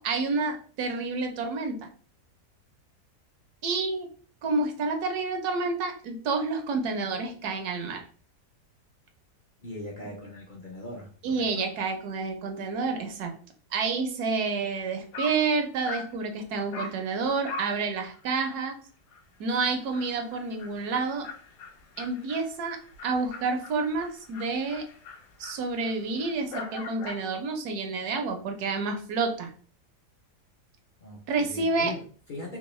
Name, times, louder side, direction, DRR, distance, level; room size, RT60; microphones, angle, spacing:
voice 1, 0.0-1.9 3.6-4.1 4.4-8.0 11.2-13.3 13.7-18.8 19.4-21.3 22.0-24.8 25.4-29.5 31.3-31.9, right 4 dB, 75° right, 5 dB, 1.2 m, -29 dB
voice 2, 9.6-11.6 31.0-32.6, left 2 dB, 55° left, -2 dB, 0.5 m, -40 dB
Dog, 14.8-14.9 15.1-15.5 15.9-16.2 16.7-17.0 17.5-17.8 18.1-18.2 18.6-18.7 19.1-19.2 19.5-27.3, left 3 dB, 90° left, 1.4 m, -42 dB
3.6 x 2.9 x 3.0 m, 0.43 s
omnidirectional pair, 1.7 m